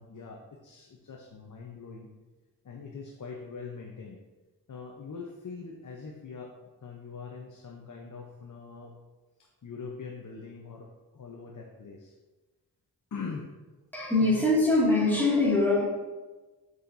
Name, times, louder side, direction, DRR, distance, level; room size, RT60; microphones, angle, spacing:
voice 1, 0.0-2.1 2.6-4.2 4.7-6.5 6.8-8.9 9.4-12.1 13.1-13.6 14.2-14.5, left 5 dB, 50° left, 0 dB, 0.8 m, -42 dB
voice 2, 13.9-15.8, left 2 dB, 5° left, -6 dB, 2.1 m, -23 dB
7.3 x 6.4 x 2.6 m, 1.2 s
wide cardioid pair, 105°, 39 cm